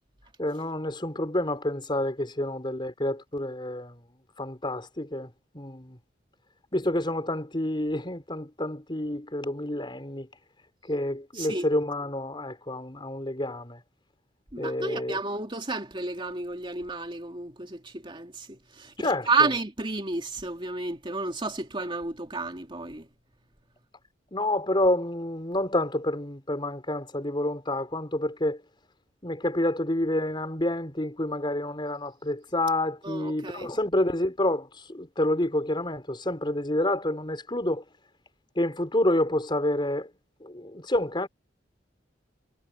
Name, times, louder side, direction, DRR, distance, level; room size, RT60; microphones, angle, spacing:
voice 1, 0.4-4.0 4.4-6.0 6.7-10.3 10.9-13.8 14.6-15.2 19.0-19.5 24.3-28.6 29.2-37.8 38.6-40.1 40.4-41.3, left 1 dB, 25° left, 4.3 m, -28 dB
voice 2, 11.3-11.7 14.5-23.1 33.0-33.7, right 3 dB, 30° right, 2.7 m, -31 dB
head